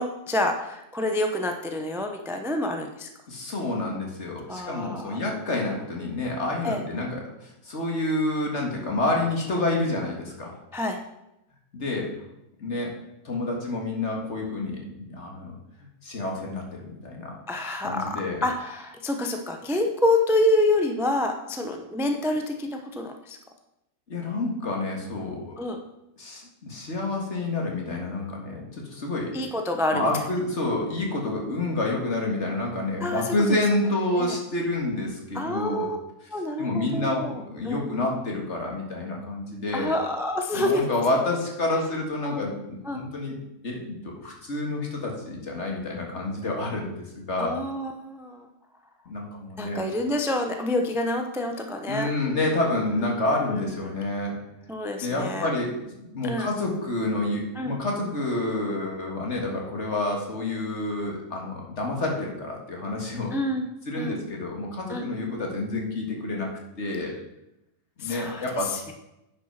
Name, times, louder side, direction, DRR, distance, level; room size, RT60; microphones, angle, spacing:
voice 1, 0.0-3.1 4.5-5.2 6.6-6.8 10.7-11.0 17.5-23.4 25.6-25.8 29.3-30.0 33.0-33.6 34.2-34.4 35.3-36.0 36.3-37.3 37.6-37.8 39.7-40.9 42.3-42.4 42.9-43.0 47.4-48.5 49.6-52.1 53.1-53.2 53.5-53.9 54.7-55.5 56.2-56.5 57.6-57.8 63.3-63.7 64.0-64.2 64.9-65.1 68.0-68.4 68.7-68.9, left 1 dB, 5° right, 4 dB, 0.5 m, -27 dB
voice 2, 3.3-10.6 11.7-12.1 12.6-15.6 16.0-17.4 17.8-18.4 24.1-25.5 26.2-29.3 29.9-35.9 36.6-39.9 40.5-43.4 43.6-46.9 47.3-47.6 49.1-49.8 51.9-54.4 55.0-55.8 56.1-63.3 63.9-66.5 66.8-67.2 68.0-68.9, left 2 dB, 45° left, 0 dB, 2.1 m, -28 dB
9.7 x 5.9 x 5.9 m, 0.88 s
omnidirectional pair, 1.7 m